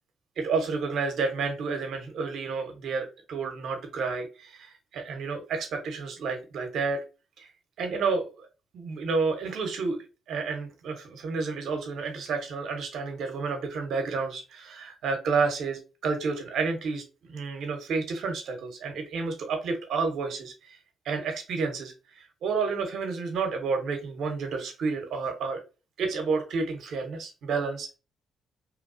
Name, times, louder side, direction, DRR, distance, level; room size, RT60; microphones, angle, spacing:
voice 1, 0.4-7.0 7.4-7.5 7.8-8.5 8.7-10.0 10.3-20.8 21.0-25.6 26.0-28.0, right 4 dB, 70° right, 0.9 m, -30 dB
3.0 x 2.3 x 2.5 m
cardioid pair, 90°, 0 cm